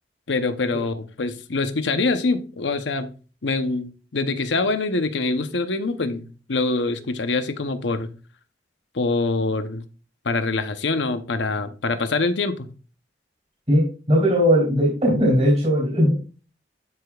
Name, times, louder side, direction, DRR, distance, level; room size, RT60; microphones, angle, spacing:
voice 1, 0.3-3.1 3.4-8.1 8.9-9.8 10.2-12.7, left 3 dB, 85° left, 0.8 m, -24 dB
voice 2, 13.7-16.1, equal, 35° right, 3.1 m, -18 dB
12.0 x 5.0 x 2.4 m
head